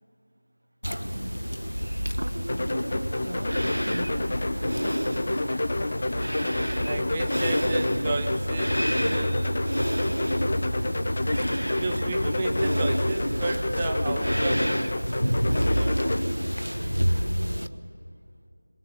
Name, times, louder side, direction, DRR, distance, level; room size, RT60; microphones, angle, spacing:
sound 1, 0.8-17.7, equal, 90° right, 1.2 m, -28 dB
voice 1, 1.0-1.4 2.2-4.5 17.6-18.0, right 1 dB, 50° right, 5 dB, 2.3 m, -38 dB
sound 2, 2.5-16.2, left 2 dB, 30° left, 1.1 m, -30 dB
sound 3, 6.4-14.0, left 1 dB, 5° left, 4.2 m, -45 dB
voice 2, 6.4-9.6 11.8-15.1 15.5-16.3, right 3 dB, 15° right, 3 dB, 1.0 m, -33 dB
27.0 x 23.0 x 8.7 m, 2.8 s
figure-of-eight pair, 170°, 0 cm